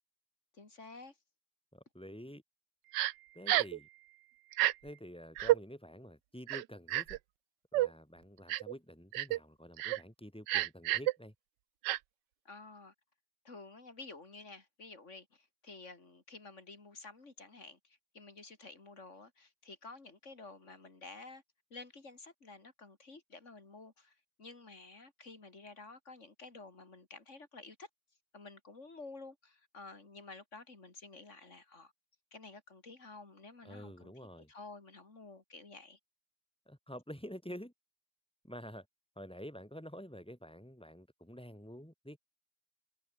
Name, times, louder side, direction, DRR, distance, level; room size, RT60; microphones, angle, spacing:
voice 1, 0.5-1.2 12.4-12.9 13.4-21.4 21.7-27.9 28.3-31.9 32.3-34.1 34.5-36.0, left 3 dB, 40° left, 3.4 m, -51 dB
voice 2, 1.7-2.4 3.3-3.9 4.8-7.2 7.7-11.3 33.6-34.5 36.7-37.7 38.4-38.8 39.1-42.2, equal, 5° left, 3.3 m, -48 dB
Crying sobbing, 2.9-3.1 3.5-3.8 4.5-4.7 5.4-5.6 6.5-7.2 7.7-7.9 8.5-8.7 9.1-9.4 9.8-10.0 10.5-11.1 11.8-12.0, right 16 dB, 85° right, 1.3 m, -30 dB
omnidirectional pair, 1.9 m